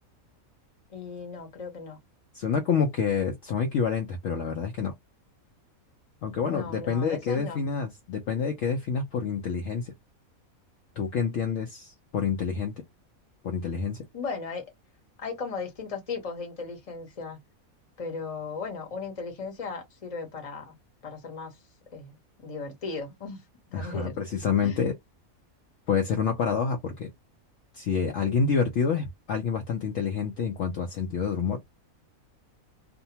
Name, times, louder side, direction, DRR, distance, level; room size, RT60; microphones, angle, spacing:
voice 1, 0.9-2.0 6.4-7.6 14.1-14.7 15.2-17.4 18.0-20.7 21.0-21.5 21.9-22.2 22.4-23.4 23.7-24.1 24.6-24.8, left 4 dB, 30° left, 0.8 m, -36 dB
voice 2, 2.3-4.9 6.2-9.9 11.0-12.7 13.4-14.0 23.7-24.9 25.9-27.1 27.7-31.6, left 6 dB, 65° left, 0.8 m, -28 dB
2.7 x 2.1 x 2.7 m
omnidirectional pair, 1.5 m